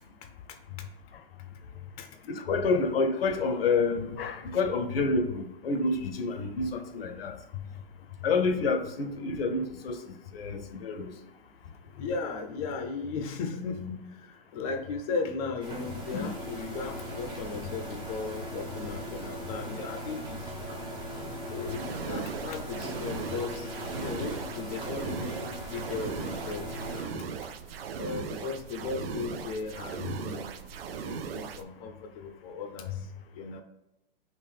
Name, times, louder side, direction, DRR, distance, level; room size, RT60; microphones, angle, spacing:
voice 1, 2.3-7.3 8.2-10.0 10.3-11.1 16.1-16.3 21.6-21.7, left 3 dB, 80° left, 7 dB, 0.7 m, -28 dB
voice 2, 12.0-20.4 21.5-23.7 23.9-27.2 28.0-30.5 31.0-33.1 33.3-33.6, left 5 dB, 40° left, 5 dB, 0.6 m, -36 dB
sound 1, 15.6-27.0, equal, 15° right, 0.7 m, -39 dB
sound 2, 21.6-31.6, right 6 dB, 75° right, 0.4 m, -38 dB
3.7 x 2.5 x 3.3 m, 0.94 s
hypercardioid pair, 125°, 29 cm